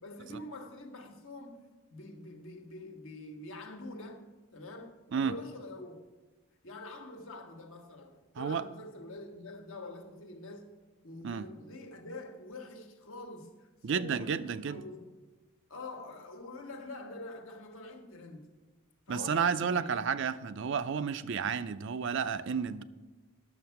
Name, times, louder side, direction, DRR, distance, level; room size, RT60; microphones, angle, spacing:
voice 1, 0.0-6.1 6.6-10.7 11.0-15.1 15.7-18.5 19.1-19.9, left 2 dB, 65° left, 1.3 m, -46 dB
voice 2, 13.8-14.8 19.1-22.8, right 6 dB, 60° right, 0.4 m, -31 dB
11.0 x 7.1 x 5.7 m
head